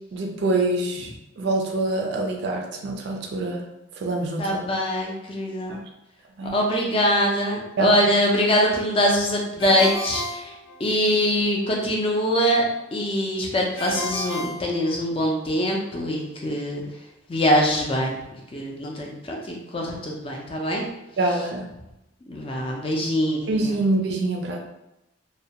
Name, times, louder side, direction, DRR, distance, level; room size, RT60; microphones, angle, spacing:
voice 1, 0.1-3.6 4.0-4.6 5.7-5.8 6.4-6.6 7.8-7.9 21.2-21.7 23.5-24.6, right 2 dB, 60° right, 1 dB, 0.3 m, -25 dB
voice 2, 4.4-5.8 6.4-10.5 10.8-12.7 12.9-16.8 17.3-18.2 18.5-20.8 22.3-23.7, equal, 30° left, -1 dB, 0.4 m, -23 dB
Ringtone, 9.6-11.3 13.8-15.4, equal, 80° left, 0.9 m, -33 dB
2.2 x 2.1 x 2.8 m, 0.91 s
head